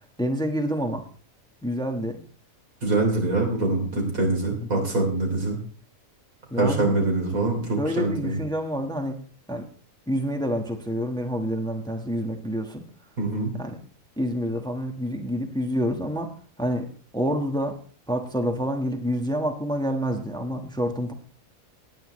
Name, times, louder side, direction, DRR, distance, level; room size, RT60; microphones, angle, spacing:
voice 1, 0.2-1.0 1.6-2.2 4.7-4.9 6.5-7.0 7.8-9.2 9.5-9.7 10.1-12.8 13.5-13.8 14.2-17.8 18.1-21.1, equal, 5° left, 4 dB, 1.2 m, -28 dB
voice 2, 2.8-5.6 6.6-8.4 13.2-13.5, right 2 dB, 80° right, 1 dB, 3.7 m, -24 dB
18.5 x 9.3 x 3.1 m, 0.43 s
omnidirectional pair, 1.4 m